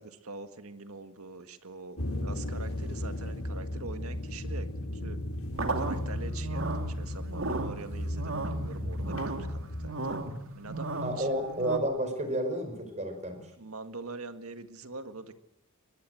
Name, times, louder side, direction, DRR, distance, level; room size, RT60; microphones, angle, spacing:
voice 1, 0.0-4.7 4.9-5.2 5.7-10.2 10.5-11.5 13.5-15.3, right 3 dB, 85° right, 9 dB, 1.9 m, -44 dB
sound 1, 2.0-9.9, left 1 dB, 85° left, 3.4 m, -35 dB
sound 2, 5.5-11.8, right 2 dB, 65° right, 2.6 m, -35 dB
voice 2, 11.0-13.4, right 1 dB, 35° right, 7 dB, 4.9 m, -31 dB
21.5 x 21.5 x 7.9 m, 0.78 s
head